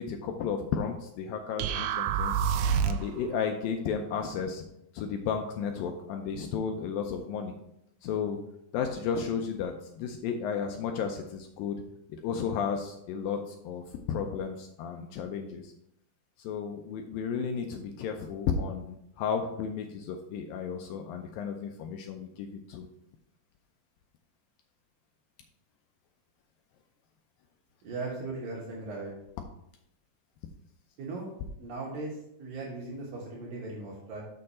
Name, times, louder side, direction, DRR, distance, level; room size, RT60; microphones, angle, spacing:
voice 1, 0.0-2.4 2.8-4.6 4.9-7.5 8.0-8.4 8.7-11.8 12.2-15.7 16.4-22.9, left 6 dB, 80° left, 4 dB, 2.1 m, -33 dB
sound 1, 1.6-3.2, right 7 dB, 85° right, 2.1 m, -27 dB
voice 2, 27.8-29.1 31.0-31.3 31.6-34.2, right 3 dB, 65° right, -4 dB, 2.9 m, -38 dB
6.7 x 6.5 x 4.2 m, 0.80 s
omnidirectional pair, 4.6 m